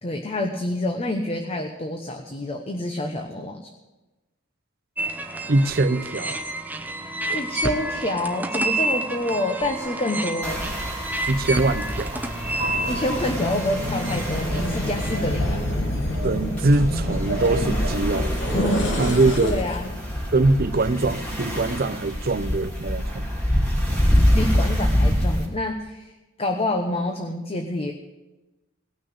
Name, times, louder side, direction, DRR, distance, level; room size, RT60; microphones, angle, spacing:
voice 1, 0.0-3.7 7.3-10.7 12.9-15.6 19.4-20.1 24.1-26.1 26.4-27.9, left 1 dB, 30° left, 3 dB, 1.0 m, -27 dB
sound 1, 5.0-15.2, right 2 dB, 10° right, 0.8 m, -30 dB
voice 2, 5.5-6.4 11.3-12.2 16.2-18.3 19.0-19.6 20.3-23.3, right 2 dB, 50° right, 11 dB, 0.6 m, -22 dB
sound 2, 10.4-25.5, equal, 5° left, 3.1 m, -26 dB
sound 3, 12.4-19.9, equal, 65° left, 2.2 m, -28 dB
18.5 x 6.3 x 8.0 m, 1.1 s
head